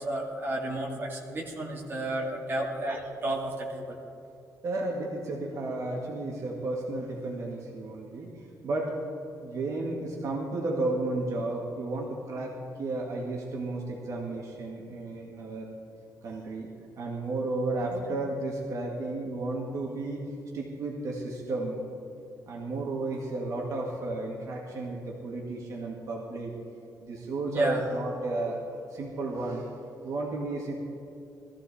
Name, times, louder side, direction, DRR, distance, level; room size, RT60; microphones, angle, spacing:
voice 1, 0.0-4.0 17.9-18.0 27.5-27.8, right 1 dB, 30° right, -3 dB, 2.3 m, -32 dB
voice 2, 4.6-9.0 9.4-15.7 16.2-16.7 17.0-21.9 22.5-26.6 27.0-29.7 30.0-30.7, right 2 dB, 50° right, -2 dB, 2.0 m, -33 dB
20.0 x 14.5 x 4.3 m, 2.7 s
cardioid pair, 175°, 7 cm